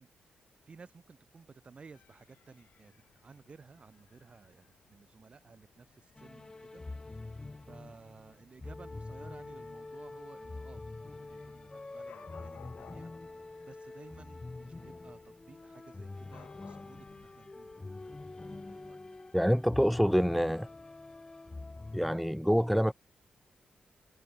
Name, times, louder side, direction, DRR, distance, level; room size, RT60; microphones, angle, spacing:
voice 1, 0.0-17.9 18.4-19.0, right 4 dB, 45° right, 5.5 m, -56 dB
Dog / Cat, 1.9-17.8, left 9 dB, 80° left, 7.2 m, -62 dB
sound 1, 6.1-22.2, left 2 dB, 25° left, 2.2 m, -45 dB
voice 2, 19.3-20.7 21.9-22.9, equal, ahead, 0.4 m, -26 dB
cardioid pair, 75°, 3 cm